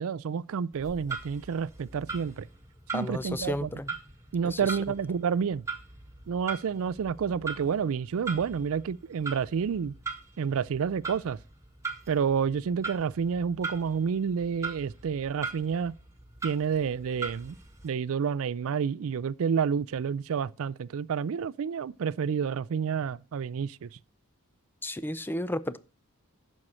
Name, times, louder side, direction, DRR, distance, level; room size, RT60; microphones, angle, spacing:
voice 1, 0.0-2.5 2.9-3.7 4.3-5.7 6.3-9.9 10.4-11.4 12.1-16.0 16.4-17.6 17.8-24.0, right 6 dB, 65° right, 0.4 m, -29 dB
Clock, 0.7-17.9, right 4 dB, 15° right, 1.6 m, -41 dB
voice 2, 2.9-3.9 4.4-4.8 24.8-25.8, left 1 dB, 10° left, 0.5 m, -33 dB
11.0 x 6.5 x 4.3 m
head